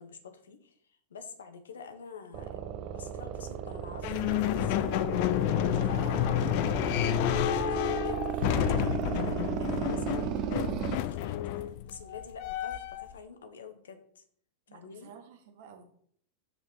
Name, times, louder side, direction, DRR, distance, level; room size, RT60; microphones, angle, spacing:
voice 1, 0.0-2.6 2.9-5.0 5.7-5.9 7.5-14.2 14.7-15.1, left 5 dB, 65° left, 8 dB, 1.0 m, -48 dB
sound 1, 2.3-11.0, right 9 dB, 35° right, 0.6 m, -35 dB
sound 2, 4.0-13.1, left 13 dB, 45° left, 0.4 m, -30 dB
voice 2, 5.7-6.3 14.7-15.8, right 5 dB, 50° right, 4 dB, 1.5 m, -49 dB
6.1 x 4.8 x 5.6 m, 0.62 s
figure-of-eight pair, 90°, 0 cm